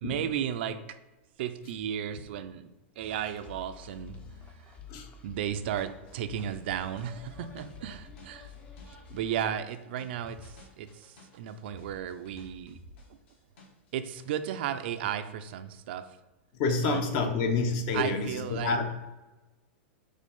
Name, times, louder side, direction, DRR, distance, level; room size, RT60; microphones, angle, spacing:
voice 1, 0.0-1.0 1.4-2.7 3.0-4.2 5.2-8.5 8.9-12.8 13.1-13.2 13.9-16.1 16.8-17.0 17.9-18.8, right 9 dB, 55° right, 10 dB, 0.5 m, -34 dB
sound 1, 3.0-9.4, left 5 dB, 15° left, 0.6 m, -49 dB
sound 2, 5.5-13.9 14.2-15.0, left 1 dB, 65° left, 1.9 m, -52 dB
voice 2, 16.5-18.8, left 3 dB, 40° left, 5 dB, 0.9 m, -28 dB
5.3 x 4.0 x 5.3 m, 1.1 s
supercardioid pair, 160°, 7 cm